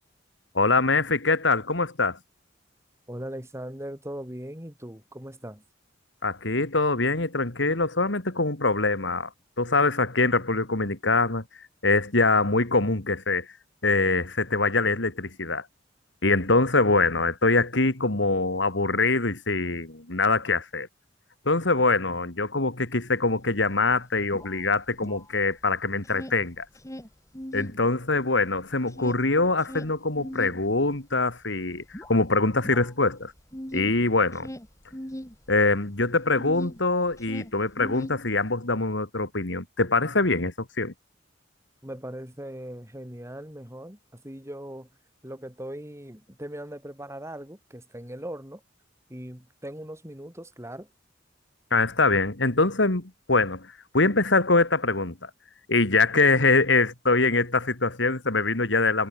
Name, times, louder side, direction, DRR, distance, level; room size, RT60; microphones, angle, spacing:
voice 1, 0.5-2.2 6.2-9.3 9.6-11.4 11.8-13.5 13.8-15.6 16.2-20.9 21.5-26.6 27.5-31.8 32.1-33.3 33.7-34.5 35.5-40.9 51.7-53.7 53.9-55.3 55.7-59.1, left 3 dB, 70° left, 2.6 m, -23 dB
voice 2, 3.1-5.6 41.8-44.9 45.2-48.6 49.1-50.9, right 1 dB, 15° right, 6.6 m, -39 dB
sound 1, 23.3-23.4 23.6-25.6 25.9-27.8 28.1-36.8 37.1-38.6, equal, 15° left, 3.6 m, -40 dB
head